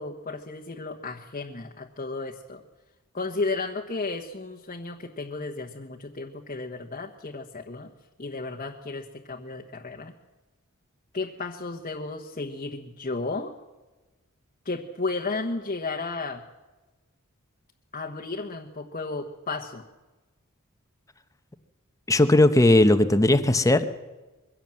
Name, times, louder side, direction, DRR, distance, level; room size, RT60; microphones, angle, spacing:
voice 1, 0.0-2.6 3.1-7.9 8.2-10.1 11.1-13.5 14.6-16.4 17.9-19.8, left 3 dB, 40° left, 1 dB, 1.2 m, -33 dB
voice 2, 22.1-23.8, left 1 dB, 15° left, 10 dB, 1.0 m, -18 dB
22.5 x 16.5 x 7.7 m, 1.2 s
head